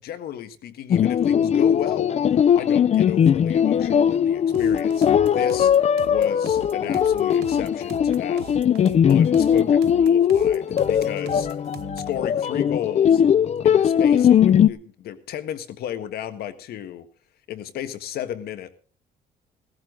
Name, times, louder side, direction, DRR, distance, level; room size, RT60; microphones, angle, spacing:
voice 1, 0.0-2.1 2.5-5.7 6.1-8.4 9.1-11.5 12.1-13.2 13.6-17.1 17.5-18.7, left 10 dB, 70° left, 10 dB, 1.6 m, -33 dB
sound 1, 0.9-14.7, left 8 dB, 40° left, 0.6 m, -19 dB
sound 2, 4.5-12.2, right 12 dB, 75° right, 1.0 m, -41 dB
16.5 x 13.5 x 3.9 m, 0.39 s
cardioid pair, 110°, 17 cm